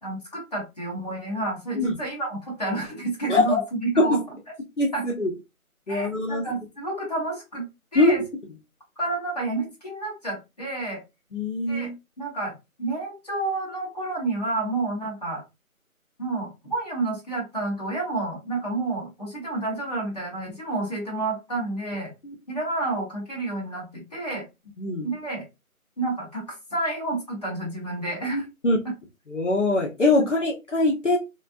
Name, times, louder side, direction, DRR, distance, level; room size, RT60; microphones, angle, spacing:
voice 1, 0.0-4.2 4.9-5.0 5.9-8.2 9.0-11.0 11.7-11.9 12.2-12.5 12.8-15.4 16.2-22.1 22.5-24.4 25.0-25.4 26.0-28.4 30.2-30.3, right 2 dB, 30° left, -4 dB, 1.3 m, -30 dB
voice 2, 3.3-3.6 4.0-4.2 4.8-5.3 5.9-6.4 7.9-8.1 11.3-11.9 22.2-22.3 24.8-25.1 28.3-28.8 29.3-31.2, left 2 dB, 55° left, -1 dB, 1.0 m, -22 dB
4.2 x 2.4 x 2.5 m, 0.25 s
figure-of-eight pair, 175°, 43 cm